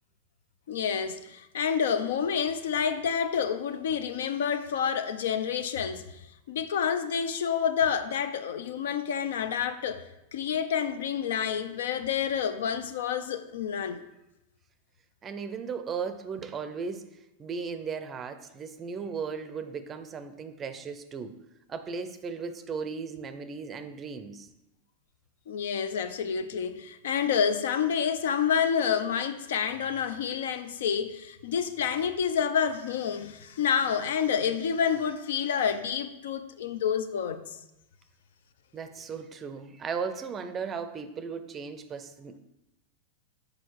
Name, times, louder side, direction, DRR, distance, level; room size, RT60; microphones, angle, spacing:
voice 1, 0.7-6.2 6.5-10.0 10.3-14.0 25.5-37.6, left 7 dB, 85° left, 0.6 m, -28 dB
voice 2, 15.2-21.4 21.7-24.5 38.7-42.4, right 5 dB, 20° right, 0.5 m, -36 dB
6.5 x 4.9 x 4.6 m
supercardioid pair, 145°, 0 cm